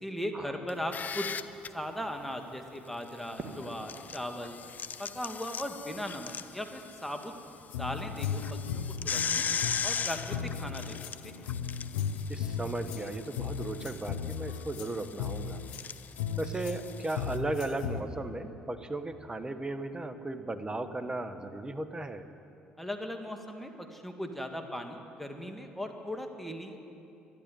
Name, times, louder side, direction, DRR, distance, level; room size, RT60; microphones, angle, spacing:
voice 1, 0.0-1.3 1.7-4.6 5.0-7.3 7.8-9.4 9.8-11.0 11.2-11.3 22.8-26.8, equal, 5° left, 4 dB, 1.9 m, -38 dB
sound 1, 0.7-1.7 3.6-7.2 7.6-7.7 8.2-17.4, left 7 dB, 45° left, 0.6 m, -38 dB
Fireworks, 3.4-6.4, right 3 dB, 40° right, 2.1 m, -48 dB
sound 2, 7.7-18.0, left 6 dB, 85° left, 0.7 m, -36 dB
voice 2, 12.3-15.6 16.4-22.2, right 2 dB, 20° right, 9 dB, 1.2 m, -36 dB
12.0 x 11.5 x 9.1 m, 2.7 s
hypercardioid pair, 60°, 4 cm